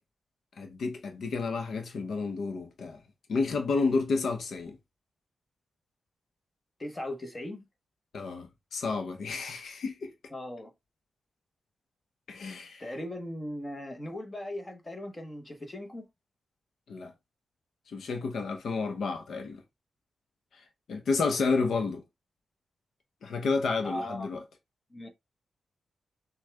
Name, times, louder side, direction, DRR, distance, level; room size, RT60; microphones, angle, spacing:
voice 1, 0.6-3.0 3.3-4.8 8.1-10.1 12.3-12.8 16.9-17.1 17.9-19.6 20.5-22.0 23.2-24.4, left 4 dB, 70° left, 0.8 m, -31 dB
voice 2, 6.8-7.7 10.3-10.7 12.8-16.1 23.8-24.3 24.9-25.1, left 1 dB, 20° left, 1.1 m, -38 dB
6.4 x 2.3 x 3.4 m
wide cardioid pair, 165°, 0 cm